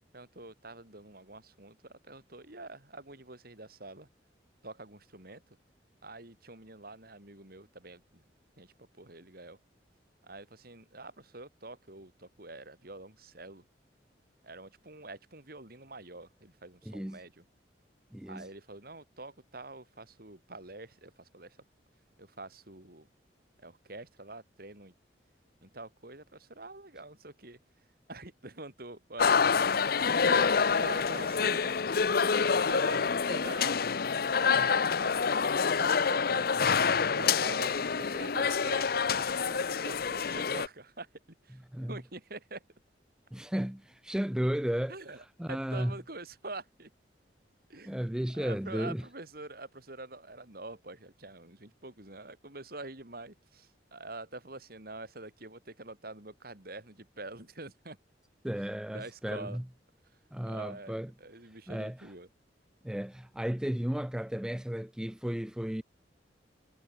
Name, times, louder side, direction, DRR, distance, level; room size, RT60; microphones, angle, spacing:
voice 1, 0.1-4.1 4.6-5.4 6.0-8.2 8.6-9.6 10.2-13.6 14.4-17.4 18.3-21.6 22.2-23.1 23.6-24.9 25.6-27.6 28.1-31.5 32.2-33.8 34.3-35.4 35.8-36.5 37.1-41.1 41.4-41.6 41.9-42.6 44.9-46.9 47.7-58.0 58.9-59.6 60.5-62.3, right 2 dB, 55° right, 4.4 m, -46 dB
voice 2, 16.9-17.2 18.1-18.5 34.5-34.7 41.7-42.0 43.3-44.9 45.4-45.9 47.9-49.0 58.4-59.6 60.3-61.1 61.7-62.1 62.8-65.8, equal, 5° right, 0.4 m, -34 dB
sound 1, 29.2-40.7, left 5 dB, 55° left, 0.7 m, -27 dB
head